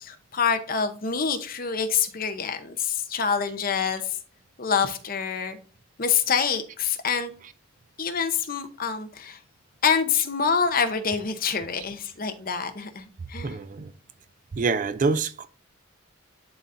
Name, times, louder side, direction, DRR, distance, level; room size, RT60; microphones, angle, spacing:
voice 1, 0.0-4.2 4.6-5.6 6.0-7.3 8.0-9.4 9.8-13.6, left 6 dB, 40° left, 0.7 m, -26 dB
voice 2, 13.4-13.9 14.5-15.5, right 4 dB, 35° right, 0.4 m, -26 dB
11.0 x 4.1 x 2.5 m
head